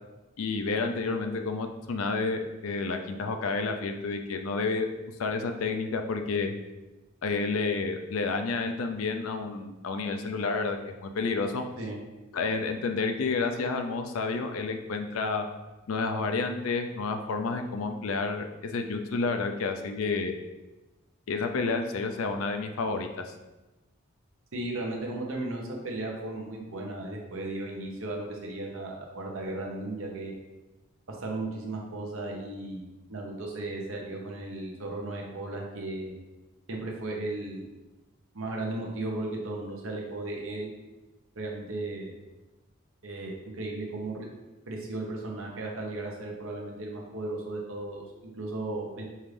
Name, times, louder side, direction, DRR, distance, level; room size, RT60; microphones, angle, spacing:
voice 1, 0.4-4.9 5.2-6.5 7.2-11.6 12.3-15.5 15.9-20.4 21.3-23.1, left 4 dB, 80° left, 6 dB, 0.4 m, -30 dB
voice 2, 24.5-30.3 31.1-36.2 36.7-37.7 38.3-40.7 41.3-42.1 43.0-44.3 44.7-49.0, right 2 dB, 70° right, -1 dB, 0.9 m, -35 dB
5.4 x 2.5 x 3.3 m, 1.1 s
head